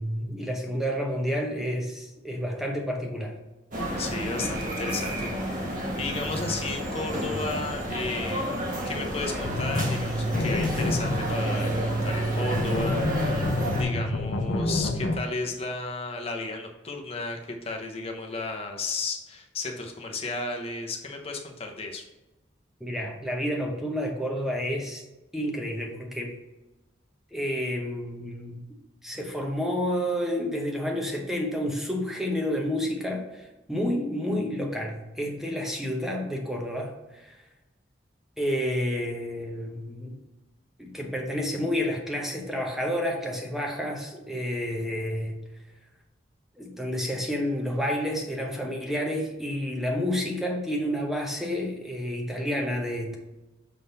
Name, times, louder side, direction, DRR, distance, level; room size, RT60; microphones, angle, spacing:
voice 1, 0.0-3.4 22.8-25.0 25.3-26.4 27.3-28.6 29.0-37.4 38.4-40.2 40.8-45.4 46.6-53.2, equal, ahead, 1 dB, 0.8 m, -30 dB
sound 1, 3.7-13.8, equal, 45° right, 1.3 m, -31 dB
voice 2, 3.9-5.3 5.6-13.0 13.7-22.0, left 3 dB, 30° left, 2 dB, 0.8 m, -33 dB
sound 2, 9.4-15.2, left 1 dB, 75° left, 0.6 m, -28 dB
6.8 x 3.8 x 4.0 m, 1.0 s
head